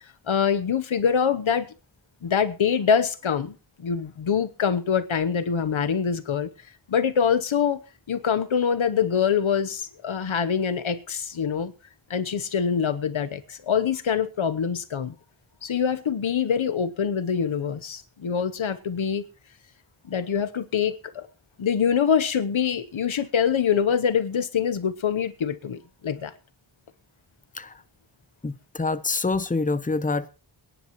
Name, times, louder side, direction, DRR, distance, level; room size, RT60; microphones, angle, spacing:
voice 1, 0.3-1.7 2.2-6.5 6.9-7.8 8.1-11.7 12.1-15.1 15.6-19.2 20.1-21.3 21.6-26.3, left 7 dB, 85° left, 1.0 m, -24 dB
voice 2, 28.4-30.3, left 3 dB, 15° left, 0.7 m, -26 dB
23.0 x 10.5 x 3.0 m
wide cardioid pair, 55°, 46 cm